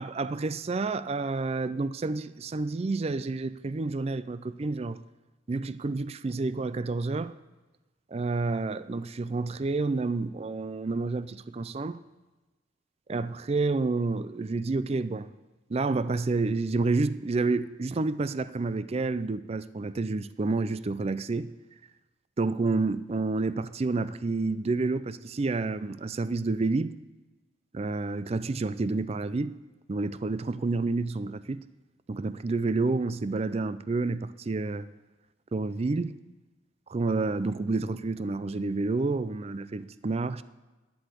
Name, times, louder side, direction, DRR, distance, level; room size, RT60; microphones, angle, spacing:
voice 1, 0.0-5.0 5.5-7.3 8.1-12.0 13.1-15.3 15.7-21.5 22.4-27.0 27.7-29.5 29.9-31.6 32.1-34.9 35.5-36.2 36.9-40.4, right 3 dB, 35° right, 0.4 m, -29 dB
10.5 x 7.8 x 8.3 m
head